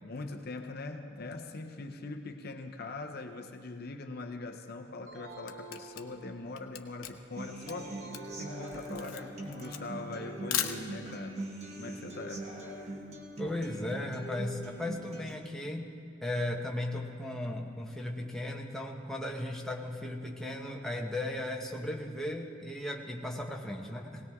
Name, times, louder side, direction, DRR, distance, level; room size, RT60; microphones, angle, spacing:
voice 1, 0.0-8.0 8.4-11.5 11.8-12.5, left 3 dB, 45° left, 5 dB, 0.7 m, -42 dB
Camera, 5.0-11.3, left 10 dB, 85° left, 0.8 m, -38 dB
sound 1, 5.1-6.6 7.7-9.2, right 3 dB, 55° right, 2.7 m, -50 dB
Human voice / Acoustic guitar, 7.4-15.3, right 1 dB, 30° right, 1.3 m, -42 dB
voice 2, 13.4-15.9 16.2-24.3, left 1 dB, ahead, -1 dB, 0.9 m, -36 dB
20.0 x 18.5 x 3.6 m, 2.4 s
head